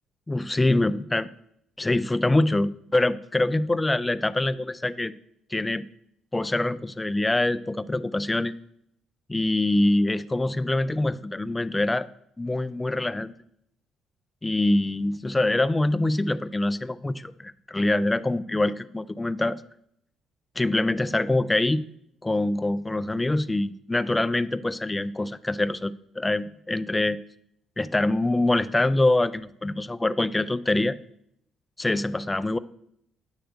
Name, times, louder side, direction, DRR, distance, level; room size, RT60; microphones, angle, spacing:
voice 1, 0.3-1.3 1.8-5.1 5.5-5.8 6.3-8.5 9.3-12.1 12.4-13.3 14.4-19.6 20.6-21.8 22.2-27.2 27.8-31.0 31.8-32.6, left 2 dB, 15° left, 15 dB, 0.3 m, -24 dB
9.1 x 3.3 x 6.4 m, 0.74 s
cardioid pair, 90°, 0 cm